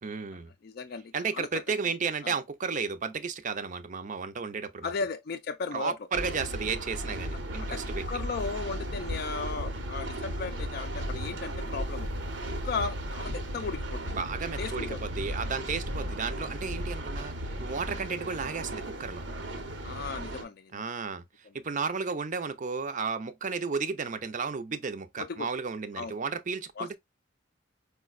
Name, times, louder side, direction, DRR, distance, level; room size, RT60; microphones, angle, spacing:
voice 1, 0.0-0.5 1.1-4.9 5.7-8.0 14.1-17.3 17.6-19.2 20.7-21.2 21.5-27.0, right 5 dB, 40° right, 0.5 m, -33 dB
voice 2, 0.6-1.5 2.2-2.4 4.8-5.9 7.7-7.8 8.1-12.1 12.6-14.2 14.6-15.0 19.8-20.7 25.2-25.5 26.0-26.1 26.8-27.0, left 4 dB, 55° left, 0.4 m, -35 dB
sound 1, 6.1-20.4, right 1 dB, 80° right, 0.9 m, -35 dB
4.8 x 2.2 x 2.3 m
head